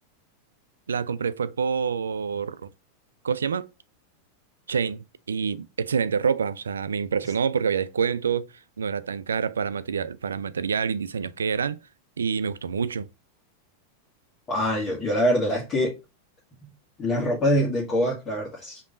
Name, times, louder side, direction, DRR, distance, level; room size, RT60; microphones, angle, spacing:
voice 1, 0.9-2.7 3.2-3.7 4.7-11.8 12.2-13.1, right 6 dB, 80° right, 0.4 m, -27 dB
voice 2, 14.5-15.9 16.6-16.7 17.0-18.8, equal, 30° left, 1.6 m, -24 dB
5.1 x 3.0 x 2.4 m
figure-of-eight pair, 90°, 0 cm